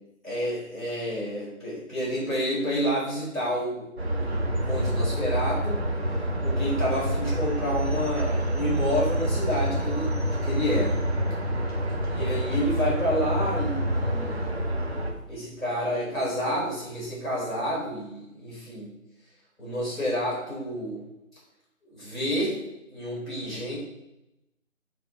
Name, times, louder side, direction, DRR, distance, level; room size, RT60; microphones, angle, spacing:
voice 1, 0.2-5.8 6.4-11.0 12.1-14.4 15.3-18.9 19.6-21.0 21.9-22.6 22.9-23.8, equal, ahead, -18 dB, 3.0 m, -29 dB
sound 1, 4.0-15.1, right 1 dB, 50° right, 1.7 m, -27 dB
7.6 x 4.7 x 4.5 m, 0.88 s
figure-of-eight pair, 165°, 41 cm